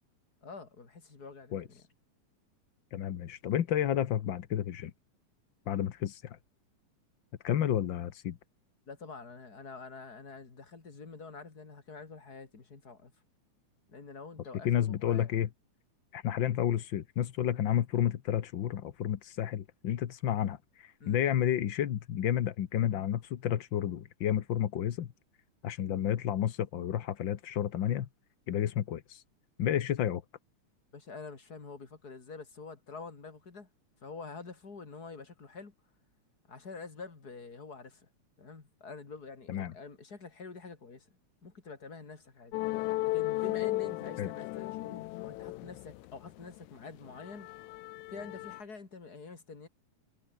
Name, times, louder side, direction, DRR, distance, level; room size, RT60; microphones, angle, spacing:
voice 1, 0.4-1.8 8.9-13.1 13.9-15.4 16.3-16.4 21.0-21.2 30.9-33.7 34.0-35.7 36.5-38.1 38.4-41.1 41.4-42.6 43.0-47.5 48.1-49.7, left 4 dB, 30° left, 3.4 m, -47 dB
voice 2, 2.9-4.9 5.7-6.4 7.4-8.4 14.6-15.5 16.1-25.1 25.6-28.1 28.5-29.2 29.6-30.2 39.5-39.7 44.2-44.3, left 10 dB, 60° left, 1.2 m, -31 dB
sound 1, 42.5-46.6 47.0-48.6, left 19 dB, 80° left, 1.9 m, -35 dB
omnidirectional pair, 3.5 m